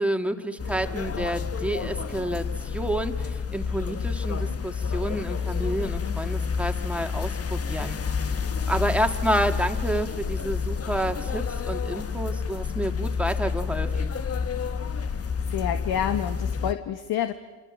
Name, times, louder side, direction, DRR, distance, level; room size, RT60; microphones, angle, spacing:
voice 1, 0.0-8.3 8.7-14.1, right 1 dB, 5° right, 5 dB, 2.5 m, -29 dB
sound 1, 0.6-16.7, left 5 dB, 35° left, 1.4 m, -29 dB
voice 2, 15.2-17.3, left 10 dB, 70° left, 8 dB, 1.5 m, -29 dB
27.5 x 27.0 x 7.6 m, 1.3 s
supercardioid pair, 70°, 40 cm